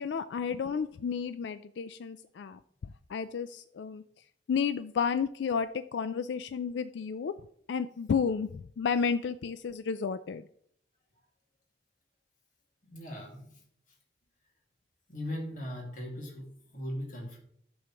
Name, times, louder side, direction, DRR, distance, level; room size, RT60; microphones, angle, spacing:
voice 1, 0.0-2.6 3.1-4.0 4.5-7.3 7.7-10.4, left 6 dB, 70° left, 12 dB, 0.3 m, -32 dB
voice 2, 12.8-13.6 15.1-17.4, left 1 dB, 45° left, -1 dB, 2.1 m, -39 dB
11.0 x 7.1 x 3.0 m, 0.67 s
head